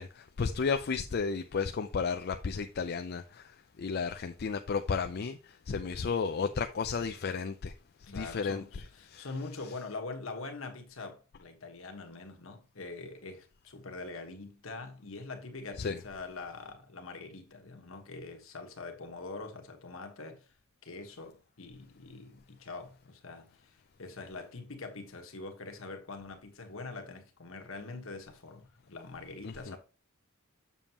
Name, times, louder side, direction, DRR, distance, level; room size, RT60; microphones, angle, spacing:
voice 1, 0.0-7.7 8.1-8.6 9.1-9.3 15.8-16.0 29.4-29.8, left 5 dB, 50° left, 0.4 m, -33 dB
voice 2, 8.0-20.5 20.8-29.8, left 3 dB, 65° left, 1.4 m, -44 dB
7.2 x 6.9 x 2.9 m
head